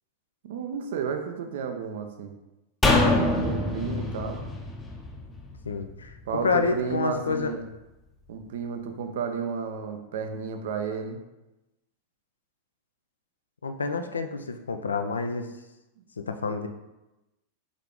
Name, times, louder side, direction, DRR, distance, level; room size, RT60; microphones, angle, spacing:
voice 1, 0.4-2.3 3.4-4.5 6.3-7.7 8.3-11.2, right 6 dB, 55° right, 5 dB, 0.5 m, -32 dB
sound 1, 2.8-6.2 6.5-6.6, left 2 dB, 15° left, 0.6 m, -25 dB
voice 2, 5.6-6.2 6.4-7.5 13.6-15.4 16.2-16.7, left 4 dB, 75° left, 7 dB, 0.3 m, -28 dB
3.7 x 3.2 x 3.6 m, 0.99 s
figure-of-eight pair, 90°, 0 cm